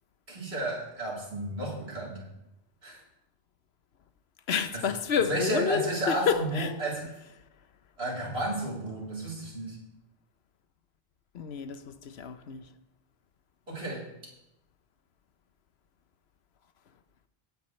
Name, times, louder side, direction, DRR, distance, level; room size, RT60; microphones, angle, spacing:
voice 1, 0.3-2.3 2.8-3.0 4.7-4.8 5.3-7.1 8.0-9.8 13.7-14.1, right 1 dB, 90° right, 3.9 m, -32 dB
voice 2, 4.5-6.8 11.3-12.7, left 7 dB, 90° left, 1.1 m, -29 dB
17.5 x 9.4 x 3.2 m
omnidirectional pair, 1.0 m